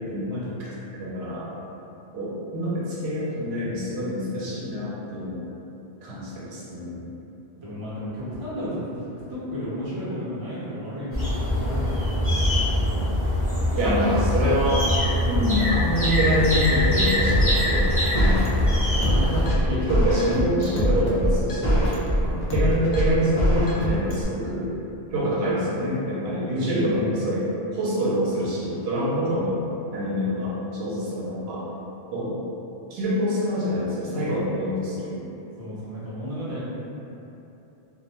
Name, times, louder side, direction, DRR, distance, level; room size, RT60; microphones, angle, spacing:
voice 1, 0.0-1.5 2.1-5.4 6.0-7.1 13.7-14.9 15.3-18.5 19.0-21.9 22.2-24.7 25.1-27.4 27.7-29.6 29.9-31.6 32.1-32.4 32.9-35.3, equal, 75° right, -7 dB, 0.8 m, -26 dB
voice 2, 7.6-13.0 14.0-14.1 26.5-27.3 35.6-36.6, equal, 25° right, -11 dB, 0.6 m, -33 dB
sound 1, 11.1-19.5, left 1 dB, 15° left, 0.6 m, -23 dB
sound 2, 17.3-24.2, equal, 55° left, 0.5 m, -23 dB
2.2 x 2.1 x 2.8 m, 2.9 s
omnidirectional pair, 1.1 m